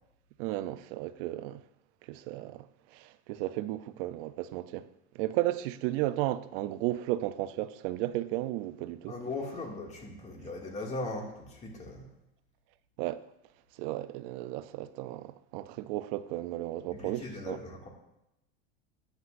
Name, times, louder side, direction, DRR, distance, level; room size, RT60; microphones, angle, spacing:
voice 1, 0.4-1.6 2.1-2.7 2.9-4.9 5.1-9.1 13.0-13.2 13.8-17.6, right 15 dB, 60° right, 0.6 m, -34 dB
voice 2, 9.1-12.1 16.9-17.9, left 2 dB, 20° left, 2.3 m, -39 dB
14.0 x 9.5 x 2.6 m
supercardioid pair, 135°, 31 cm